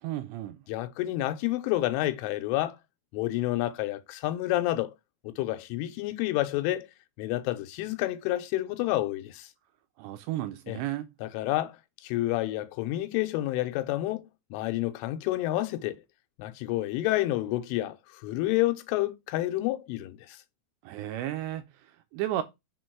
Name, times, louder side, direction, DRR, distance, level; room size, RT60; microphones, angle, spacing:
voice 1, 0.0-0.6 10.0-11.1 20.8-22.4, right 13 dB, 80° right, 2.6 m, -33 dB
voice 2, 0.7-2.8 3.1-4.9 5.2-6.9 7.2-9.5 10.7-10.8 11.2-11.8 12.0-15.9 16.4-20.4, left 16 dB, 85° left, 3.2 m, -29 dB
6.7 x 4.4 x 4.6 m
omnidirectional pair, 5.5 m